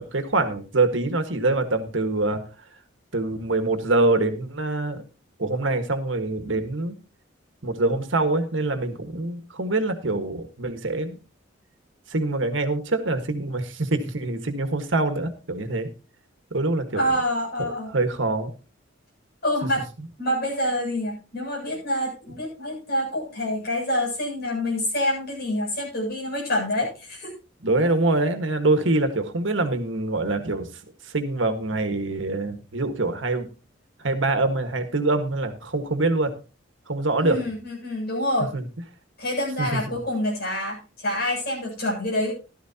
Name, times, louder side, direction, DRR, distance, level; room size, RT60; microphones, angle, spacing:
voice 1, 0.0-2.4 3.1-5.0 5.4-7.0 7.6-11.2 12.1-15.9 16.5-17.1 17.6-18.5 27.6-30.7 31.0-33.5 34.0-36.3 36.9-37.4 38.5-38.7 39.6-40.0, right 2 dB, 70° right, 7 dB, 1.6 m, -24 dB
voice 2, 16.9-17.9 19.4-19.9 20.2-27.3 37.2-38.6 39.2-42.3, left 1 dB, 50° left, -2 dB, 7.4 m, -27 dB
14.5 x 12.0 x 2.9 m, 0.31 s
head